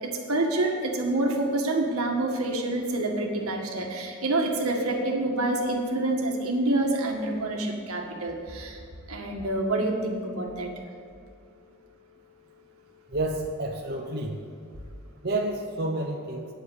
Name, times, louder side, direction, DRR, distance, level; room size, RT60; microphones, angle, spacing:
voice 1, 0.0-8.8 9.1-10.7, right 2 dB, 85° right, 1 dB, 1.9 m, -27 dB
voice 2, 13.1-14.3 15.2-16.4, right 2 dB, 45° right, 0 dB, 1.0 m, -29 dB
9.8 x 8.0 x 8.1 m, 2.3 s
head